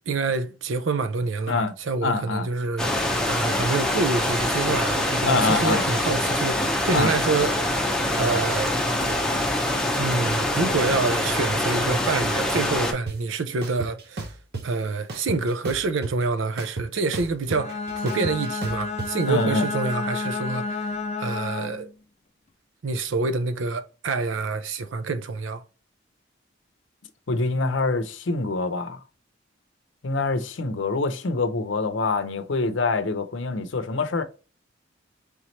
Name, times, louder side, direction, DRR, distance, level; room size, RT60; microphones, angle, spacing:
voice 1, 0.1-7.9 8.2-8.7 10.0-14.2 14.6-21.9 22.8-25.6, right 3 dB, 85° right, 0.5 m, -27 dB
voice 2, 2.0-2.5 5.3-5.8 6.9-7.1 19.2-19.7 27.3-29.0 30.0-34.2, left 3 dB, 75° left, 0.6 m, -25 dB
sound 1, 2.8-12.9, left 1 dB, 5° left, 0.7 m, -24 dB
sound 2, 13.1-13.2 13.6-14.6 15.1-16.2 16.6-19.1, right 3 dB, 55° right, 0.9 m, -33 dB
Bowed string instrument, 17.5-21.9, left 3 dB, 35° left, 0.4 m, -30 dB
3.5 x 3.2 x 4.1 m
head